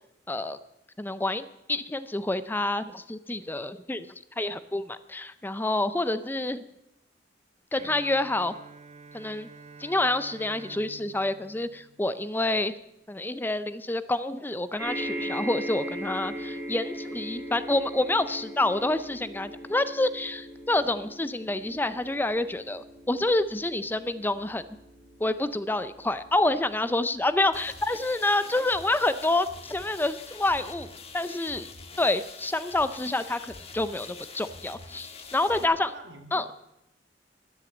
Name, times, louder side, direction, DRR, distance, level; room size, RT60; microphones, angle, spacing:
voice 1, 0.3-0.6 1.0-6.7 7.7-8.5 9.1-9.5 9.8-12.7 13.1-24.6 25.2-30.9 31.1-31.7 32.0-35.9 36.3-36.4, left 2 dB, 10° left, 13 dB, 0.5 m, -28 dB
Bowed string instrument, 7.8-12.6, right 4 dB, 40° right, 0.6 m, -49 dB
sound 1, 14.8-29.3 30.1-30.2 30.4-30.5, right 1 dB, 10° right, 4.4 m, -39 dB
sound 2, 27.5-35.6, left 4 dB, 35° left, 1.4 m, -45 dB
voice 2, 35.5-36.5, right 2 dB, 75° right, 4 dB, 2.1 m, -46 dB
13.0 x 10.5 x 7.9 m, 0.87 s
head